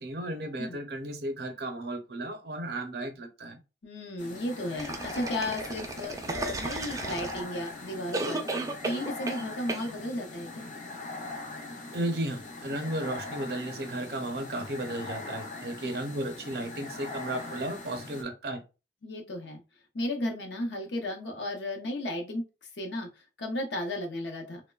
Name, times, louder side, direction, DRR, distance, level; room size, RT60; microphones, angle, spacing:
voice 1, 0.0-3.6 11.9-18.6, right 1 dB, 60° right, 6 dB, 0.6 m, -34 dB
voice 2, 3.8-8.5 8.8-10.7 19.0-19.6 19.9-22.4 22.8-23.1 23.4-24.6, left 1 dB, 80° left, 3 dB, 0.7 m, -34 dB
sound 1, 4.2-18.2, left 2 dB, 45° left, 0.5 m, -41 dB
sound 2, 4.8-7.7 8.1-9.4 9.7-9.9, right 3 dB, 20° right, 0.3 m, -34 dB
3.0 x 2.1 x 2.2 m, 0.30 s
head